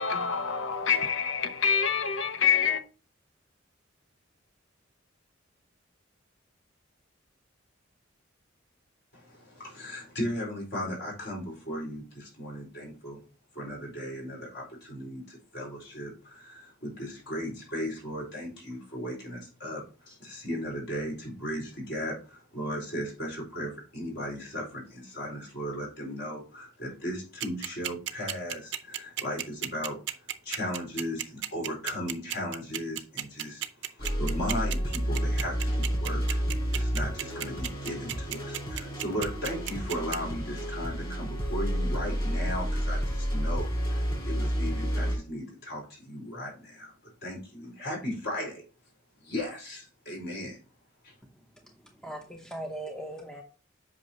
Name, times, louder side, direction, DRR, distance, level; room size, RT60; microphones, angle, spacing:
voice 1, 0.0-2.8, left 7 dB, 75° left, 0.8 m, -26 dB
voice 2, 9.1-13.2 13.5-36.4 36.7-46.9 47.2-48.6 49.2-50.6 51.0-51.1, equal, 55° left, 4.3 m, -36 dB
sound 1, 27.4-40.2, right 12 dB, 65° right, 0.6 m, -33 dB
sound 2, 34.0-45.2, equal, 25° left, 4.3 m, -30 dB
voice 3, 52.0-53.4, right 1 dB, 5° left, 0.7 m, -38 dB
8.2 x 5.6 x 2.8 m
head